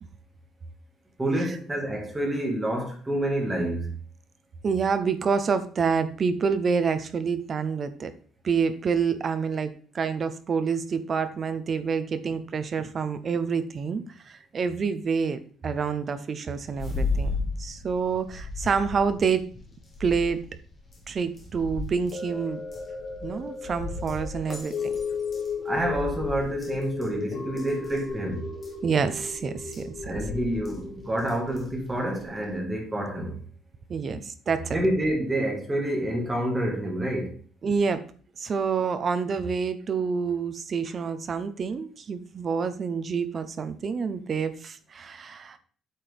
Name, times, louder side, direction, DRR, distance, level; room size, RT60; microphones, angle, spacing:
voice 1, 1.2-3.9 25.7-28.5 30.0-33.4 34.1-34.2 34.7-37.3, right 1 dB, 10° right, 1.6 m, -28 dB
voice 2, 4.6-8.1 8.4-17.3 17.6-19.4 20.0-20.5 21.1-22.6 23.2-24.9 28.8-30.2 33.9-34.7 37.6-38.0 38.4-45.6, right 5 dB, 30° right, 0.6 m, -27 dB
sound 1, 16.7-32.6, left 3 dB, 20° left, 1.8 m, -36 dB
sound 2, 22.1-32.5 32.9-33.0, left 5 dB, 65° left, 2.9 m, -36 dB
8.4 x 6.0 x 3.4 m
cardioid pair, 180°, 0 cm